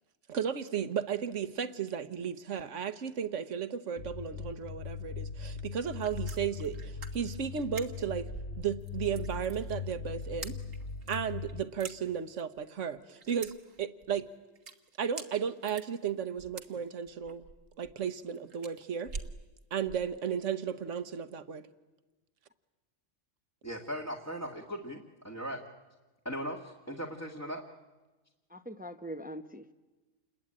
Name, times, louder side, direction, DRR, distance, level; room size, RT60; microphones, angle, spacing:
voice 1, 0.3-8.3 8.6-10.5 11.1-13.5 13.8-14.3 15.0-17.5 17.8-19.1 19.7-21.7, right 8 dB, 70° right, 12 dB, 1.4 m, -34 dB
sound 1, 4.0-11.6, left 5 dB, 50° left, 1.2 m, -40 dB
sound 2, 5.8-20.1, right 4 dB, 85° right, 1.8 m, -47 dB
voice 2, 23.6-25.6 26.2-27.6, equal, 10° left, -1 dB, 1.6 m, -38 dB
voice 3, 28.5-29.7, equal, 10° right, 10 dB, 0.7 m, -42 dB
28.5 x 21.0 x 8.8 m, 1.2 s
omnidirectional pair, 1.3 m